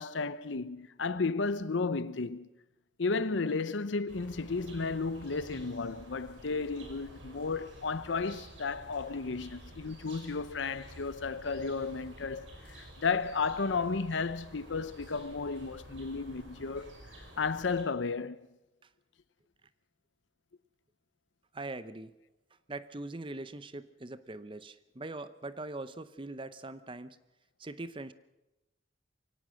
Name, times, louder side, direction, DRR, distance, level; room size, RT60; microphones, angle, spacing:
voice 1, 0.0-2.5 3.0-16.9 17.4-18.4, left 4 dB, 75° left, 0.7 m, -33 dB
sound 1, 4.1-17.8, right 1 dB, 80° right, 5.3 m, -51 dB
voice 2, 21.5-22.1 22.7-27.2 27.6-28.1, right 2 dB, 25° right, 0.7 m, -42 dB
23.5 x 17.5 x 6.3 m
head